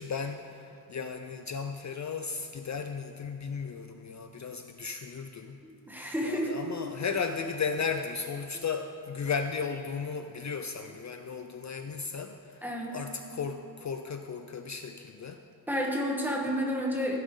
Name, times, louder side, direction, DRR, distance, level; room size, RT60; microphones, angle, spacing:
voice 1, 0.0-5.6 6.2-12.6 12.9-15.4 16.6-16.8, left 5 dB, 50° left, 6 dB, 0.5 m, -35 dB
voice 2, 5.6-6.6 8.5-8.6 12.6-13.0 15.7-17.2, equal, 5° right, -1 dB, 1.3 m, -31 dB
15.5 x 8.6 x 3.7 m, 2.6 s
wide cardioid pair, 140°, 37 cm